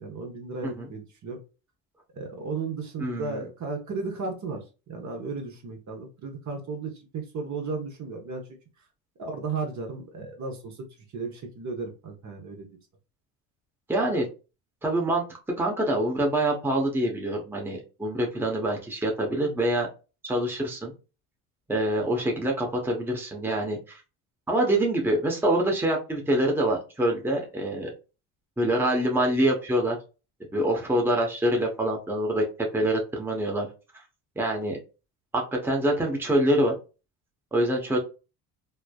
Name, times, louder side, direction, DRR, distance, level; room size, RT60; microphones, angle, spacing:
voice 1, 0.0-1.4 2.1-8.5 9.2-10.9 11.1-12.7, right 4 dB, 40° right, 2 dB, 1.0 m, -34 dB
voice 2, 3.0-3.4 13.9-14.3 14.8-15.2 15.6-19.9 20.2-20.9 21.7-24.0 24.5-27.9 28.6-30.0 30.5-32.4 32.7-33.7 34.4-34.8 35.3-36.7 37.5-38.0, right 1 dB, 5° right, 0 dB, 0.8 m, -25 dB
3.2 x 2.0 x 2.2 m, 0.31 s
hypercardioid pair, 70°, 45 cm